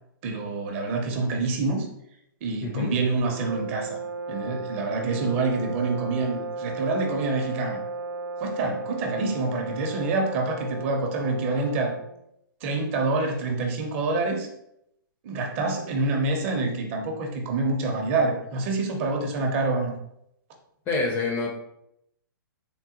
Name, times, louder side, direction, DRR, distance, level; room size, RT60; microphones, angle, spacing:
voice 1, 0.2-1.9 2.4-4.0 4.3-7.8 8.4-12.0 12.6-14.5 15.2-20.0, right 3 dB, 35° right, 2 dB, 0.5 m, -27 dB
voice 2, 2.6-2.9 20.9-21.5, left 3 dB, 20° left, 1 dB, 0.4 m, -26 dB
sound 1, 3.3-12.2, right 3 dB, 85° right, 0.4 m, -35 dB
3.5 x 2.1 x 2.7 m, 0.77 s
hypercardioid pair, 140°, 12 cm